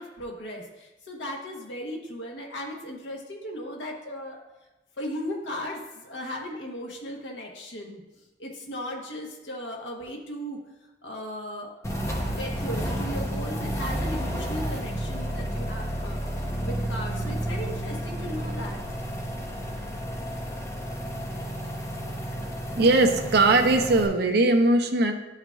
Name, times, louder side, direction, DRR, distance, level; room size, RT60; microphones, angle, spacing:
voice 1, 0.0-4.4 5.0-8.0 8.4-10.6 11.0-16.2 16.6-18.8, equal, 80° left, 0 dB, 1.0 m, -36 dB
sound 1, 11.8-24.1, equal, 15° left, 0.7 m, -31 dB
voice 2, 22.8-25.1, right 2 dB, 60° right, 4 dB, 0.7 m, -20 dB
11.0 x 4.6 x 2.3 m, 1.1 s
head